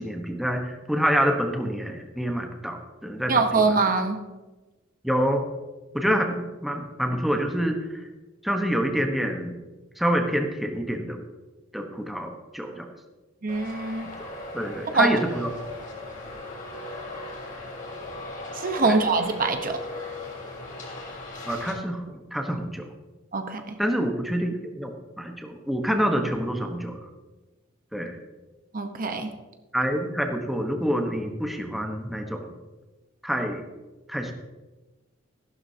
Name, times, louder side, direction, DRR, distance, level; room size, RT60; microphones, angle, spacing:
voice 1, 0.0-3.7 5.0-5.4 5.9-8.0 8.4-9.6 10.0-11.2 11.7-12.9 14.2-14.3 14.5-15.5 18.8-19.0 21.5-22.9 23.8-27.0 27.9-28.2 29.7-32.5 33.2-33.6 34.1-34.3, equal, ahead, 2 dB, 1.1 m, -27 dB
voice 2, 3.3-4.2 13.4-14.1 14.9-15.1 18.5-19.8 23.3-23.6 28.7-29.3, right 4 dB, 45° right, 6 dB, 1.0 m, -23 dB
Traffic noise roadway noise, 13.5-21.7, left 1 dB, 40° left, 3.1 m, -38 dB
14.5 x 12.0 x 2.8 m, 1.2 s
head